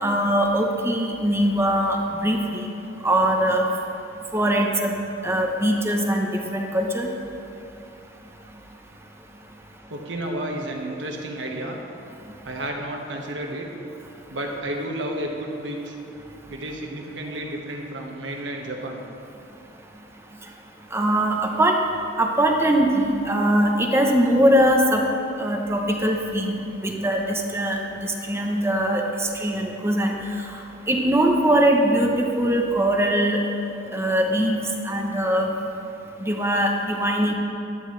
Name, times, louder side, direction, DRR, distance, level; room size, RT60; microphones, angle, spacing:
voice 1, 0.0-2.7 3.0-3.6 4.3-4.9 5.2-7.1 20.9-21.8 22.2-25.0 25.4-30.2 30.9-33.4 33.9-34.6 34.8-35.5 36.2-37.3, right 1 dB, 15° right, 1 dB, 0.9 m, -21 dB
voice 2, 9.9-11.8 12.4-13.7 14.3-16.0 16.5-19.0, right 1 dB, 85° right, 1 dB, 1.5 m, -31 dB
14.0 x 11.0 x 3.3 m, 2.8 s
head